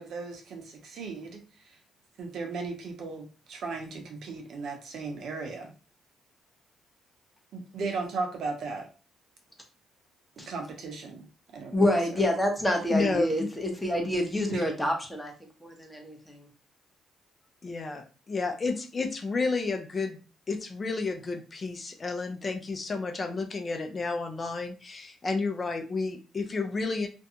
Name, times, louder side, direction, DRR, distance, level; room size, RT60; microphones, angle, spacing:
voice 1, 0.0-1.8 2.2-5.7 7.5-8.9 10.4-11.3 11.5-12.2 13.1-13.2 14.5-14.6, right 4 dB, 70° right, 2 dB, 0.7 m, -36 dB
voice 2, 11.7-15.3 15.6-16.4, left 1 dB, 5° left, 2 dB, 0.8 m, -27 dB
voice 3, 12.9-13.5 17.6-20.2 20.5-27.1, left 3 dB, 35° left, 5 dB, 0.5 m, -31 dB
2.6 x 2.2 x 2.7 m, 0.33 s
cardioid pair, 90°, 0 cm